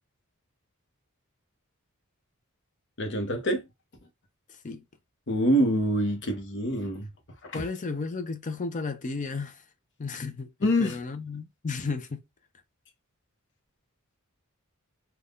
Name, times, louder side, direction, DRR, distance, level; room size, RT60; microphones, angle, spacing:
voice 1, 3.0-3.6 5.3-7.1 7.4-7.6 10.6-11.0, equal, 55° left, 0.9 m, -25 dB
voice 2, 7.5-9.6 10.0-12.2, left 4 dB, 35° left, 0.5 m, -33 dB
2.6 x 2.3 x 3.5 m
head